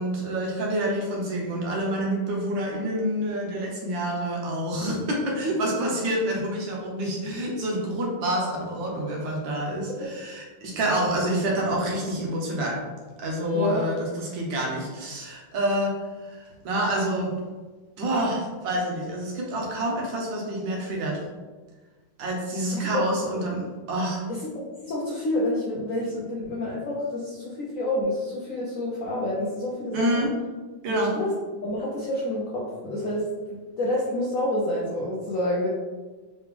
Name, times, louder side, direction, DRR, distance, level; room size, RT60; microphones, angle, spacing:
voice 1, 0.0-12.8 13.2-15.9 16.2-17.4 18.0-21.2 22.2-24.3 29.9-30.3 30.8-31.1, right 1 dB, 70° right, -2 dB, 1.6 m, -27 dB
voice 2, 24.3-30.3 30.9-31.3 31.6-33.2 33.5-35.7, left 1 dB, 65° left, -5 dB, 0.8 m, -28 dB
3.9 x 3.2 x 3.6 m, 1.3 s
omnidirectional pair, 2.1 m